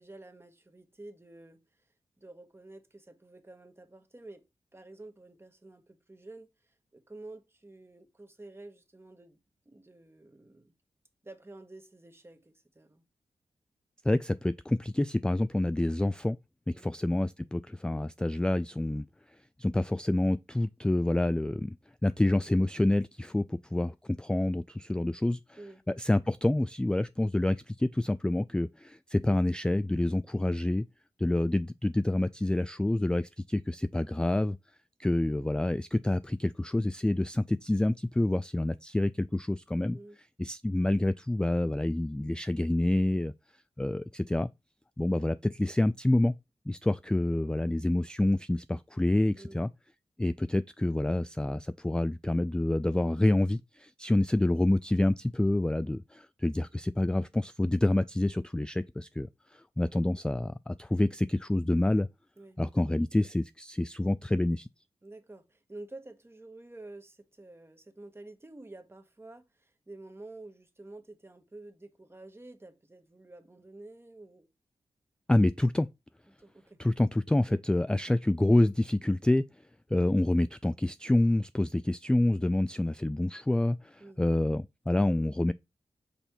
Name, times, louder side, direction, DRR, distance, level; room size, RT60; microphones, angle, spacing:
voice 1, 0.0-1.6 2.2-4.4 4.7-9.4 9.6-10.7 11.2-13.0 16.7-16.9 25.6-25.8 39.9-40.2 49.4-49.7 62.4-62.6 65.0-74.5 76.3-76.8 84.0-84.2, right 2 dB, 20° right, 1.3 m, -50 dB
voice 2, 14.0-16.4 16.7-19.0 19.6-21.8 22.0-25.6 25.9-30.8 31.2-34.6 35.0-40.0 40.4-43.3 43.8-44.5 45.0-46.3 46.7-49.7 50.2-62.1 62.6-64.7 75.3-75.9 76.8-79.4 79.9-85.5, left 1 dB, 10° left, 0.3 m, -27 dB
5.6 x 4.3 x 4.3 m
cardioid pair, 45°, 11 cm